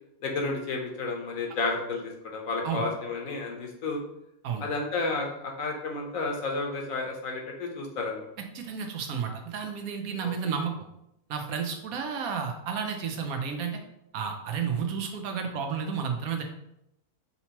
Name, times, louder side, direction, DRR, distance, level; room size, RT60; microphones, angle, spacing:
voice 1, 0.2-4.0 4.6-8.3 10.2-10.5, left 3 dB, 65° left, 1 dB, 1.2 m, -32 dB
voice 2, 8.5-10.7 11.3-13.8 14.1-16.4, right 6 dB, 75° right, 4 dB, 1.1 m, -31 dB
5.5 x 2.9 x 2.9 m, 0.81 s
omnidirectional pair, 1.6 m